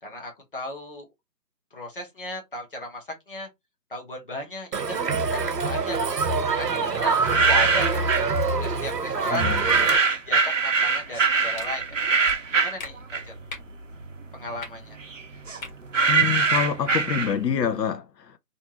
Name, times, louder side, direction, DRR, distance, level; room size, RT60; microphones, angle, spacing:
voice 1, 0.0-1.1 1.7-3.5 3.9-5.0 5.3-6.0 6.5-8.1 8.6-9.5 10.0-12.0 12.5-13.4 14.3-15.0, left 1 dB, 35° left, 0.8 m, -35 dB
Crowd, 4.7-10.0, right 4 dB, 75° right, 0.9 m, -25 dB
sound 1, 7.1-8.3 9.3-13.5 13.9-17.6, right 5 dB, 50° right, 0.5 m, -23 dB
voice 2, 9.3-9.6 16.1-18.4, left 8 dB, 75° left, 0.6 m, -27 dB
sound 2, 11.5-11.7 12.3-12.4 12.8-12.9 13.5-13.7 14.6-14.7 15.6-15.7 16.1-16.3, left 3 dB, 55° left, 1.2 m, -37 dB
2.6 x 2.3 x 2.7 m
hypercardioid pair, 170°, 49 cm